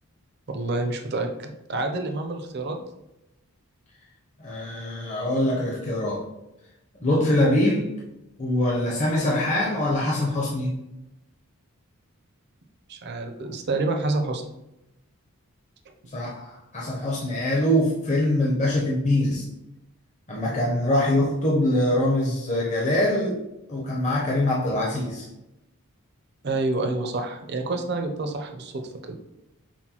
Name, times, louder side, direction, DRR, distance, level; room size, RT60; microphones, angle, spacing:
voice 1, 0.5-2.8 12.9-14.4 26.4-29.2, right 2 dB, 45° right, 5 dB, 0.5 m, -28 dB
voice 2, 4.4-6.3 7.0-7.9 8.4-10.7 16.1-19.5 20.3-23.4 23.7-25.3, left 1 dB, 30° left, -3 dB, 0.6 m, -23 dB
5.8 x 2.2 x 2.8 m, 0.90 s
head